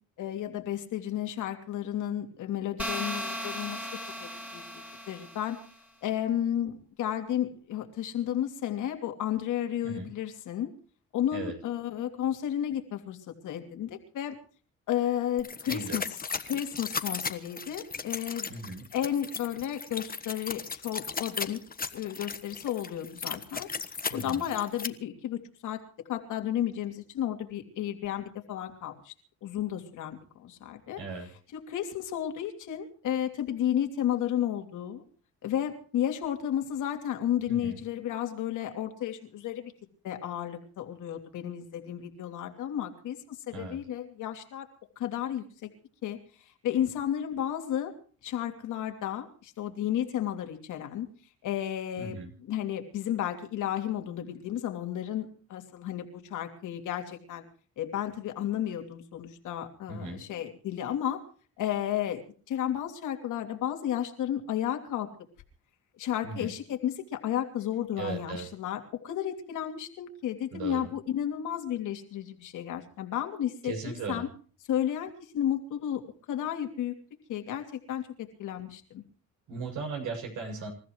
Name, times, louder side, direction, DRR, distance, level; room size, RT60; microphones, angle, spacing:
voice 1, 0.2-3.9 4.2-5.6 6.0-10.7 11.1-14.4 14.9-16.0 16.5-18.5 18.9-21.6 21.9-23.7 24.1-25.8 26.1-29.1 29.4-31.0 31.5-35.0 35.4-39.7 40.0-44.7 45.0-45.7 46.0-46.2 46.6-47.9 48.2-51.1 51.4-52.2 52.4-57.4 57.8-61.2 61.6-65.1 66.0-74.3 74.7-76.9 77.3-79.0, left 10 dB, 85° left, 5 dB, 3.1 m, -32 dB
sound 1, 2.8-5.7, equal, 5° right, 3.5 m, -37 dB
sound 2, 15.4-24.9, left 5 dB, 30° left, 1.4 m, -36 dB
voice 2, 15.7-16.0 18.5-18.9 24.1-24.4 31.0-31.3 37.5-37.8 43.5-43.8 52.0-52.3 59.9-60.2 66.2-66.5 68.0-68.5 70.5-70.9 73.6-74.3 79.5-80.7, right 4 dB, 80° right, 3 dB, 7.2 m, -37 dB
27.5 x 14.5 x 3.2 m, 0.41 s
cardioid pair, 90°, 30 cm